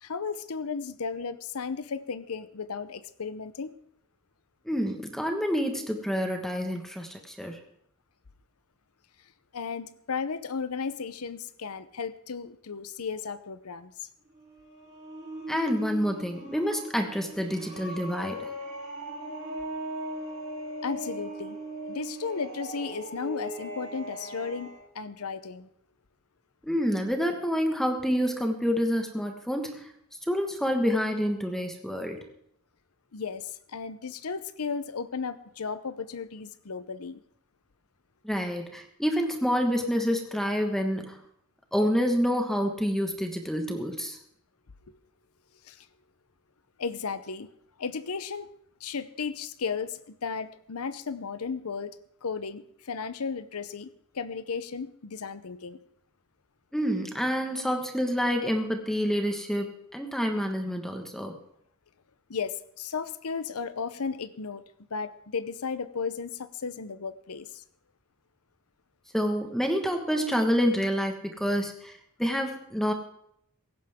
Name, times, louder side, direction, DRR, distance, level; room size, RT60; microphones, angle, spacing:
voice 1, 0.0-3.8 9.5-14.1 20.8-21.6 21.9-25.7 33.1-37.2 45.6-45.9 46.8-47.5 47.8-48.5 48.8-51.9 52.2-53.9 54.1-55.8 62.3-64.6 64.9-67.6, left 5 dB, 85° left, 13 dB, 0.8 m, -34 dB
voice 2, 4.7-7.6 15.5-18.5 26.7-29.9 30.3-32.2 38.2-41.2 41.7-44.2 56.7-61.4 69.1-72.9, equal, ahead, 4 dB, 1.5 m, -28 dB
sound 1, 14.3-24.8, right 1 dB, 60° right, 7.7 m, -39 dB
17.5 x 15.5 x 3.7 m, 0.72 s
head